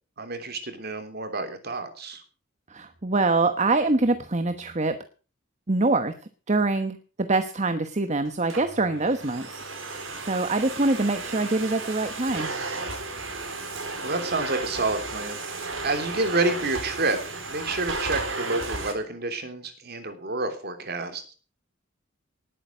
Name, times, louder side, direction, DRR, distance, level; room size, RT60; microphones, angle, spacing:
voice 1, 0.2-2.2 14.0-17.2 17.5-21.3, right 2 dB, 55° right, 8 dB, 3.2 m, -29 dB
voice 2, 2.7-4.9 5.7-6.1 6.5-12.5, right 2 dB, 35° right, 9 dB, 1.1 m, -25 dB
Domestic sounds home sounds, 8.2-18.9, right 3 dB, 85° right, 4.1 m, -34 dB
19.0 x 9.0 x 6.2 m, 0.38 s
head